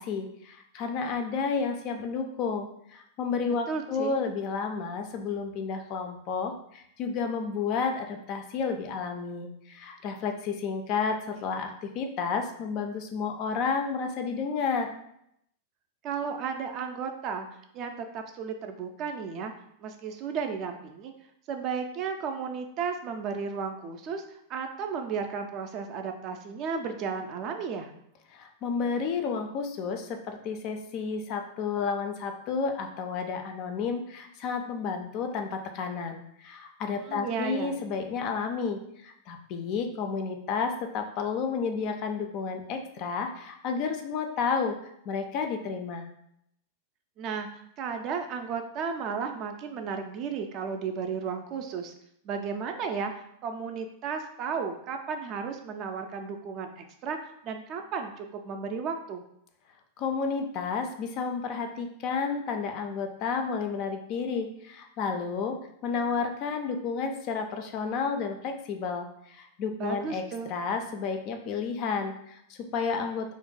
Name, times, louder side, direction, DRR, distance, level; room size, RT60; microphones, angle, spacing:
voice 1, 0.0-14.9 28.3-46.1 60.0-73.3, left 5 dB, 40° left, 5 dB, 0.4 m, -31 dB
voice 2, 3.7-4.2 16.0-17.5 17.7-19.5 19.8-21.1 21.5-24.2 24.5-27.9 37.0-37.8 47.2-47.5 47.8-51.9 52.2-53.1 53.4-59.2 69.8-70.5, right 6 dB, 40° right, 5 dB, 0.4 m, -34 dB
2.5 x 2.1 x 3.8 m, 0.75 s
figure-of-eight pair, 90°, 0 cm